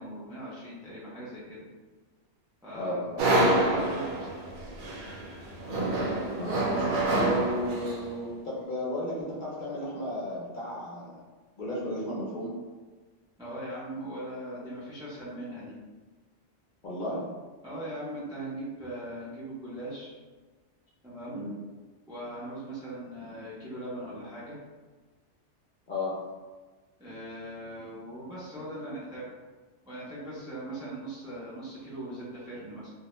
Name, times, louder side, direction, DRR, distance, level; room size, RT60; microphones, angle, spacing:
voice 1, 0.0-1.7 2.6-3.0 3.3-4.3 13.4-15.8 17.6-20.2 21.0-21.4 22.1-24.6 27.0-29.3 29.9-32.9, right 1 dB, 5° right, -8 dB, 0.3 m, -40 dB
voice 2, 2.7-3.3 6.4-11.2 11.6-12.5 16.8-17.3 21.3-21.5 25.9-26.2, left 1 dB, 55° left, -5 dB, 0.6 m, -34 dB
sound 1, 3.2-8.1, right 1 dB, 80° right, 0.9 m, -27 dB
2.3 x 2.1 x 2.9 m, 1.3 s
omnidirectional pair, 1.2 m